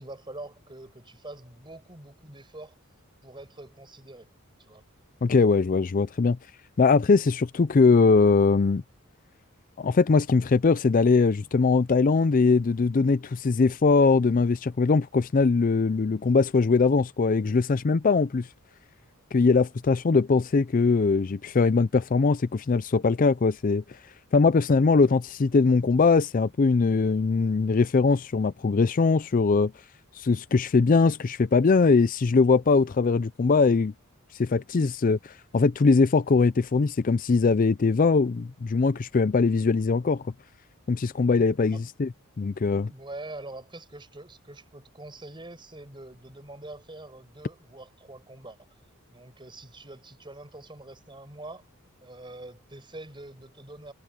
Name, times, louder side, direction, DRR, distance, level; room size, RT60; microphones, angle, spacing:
voice 1, 0.0-2.8 3.2-4.3 4.6-4.8 41.7-41.8 42.8-48.7 49.1-51.7 52.0-53.9, right 2 dB, 20° right, 5.1 m, -44 dB
voice 2, 5.2-6.4 6.8-8.8 9.8-18.5 19.3-24.0 24.3-29.7 30.1-33.9 34.3-40.2 40.9-42.1 42.4-42.9, left 4 dB, 40° left, 0.4 m, -21 dB
head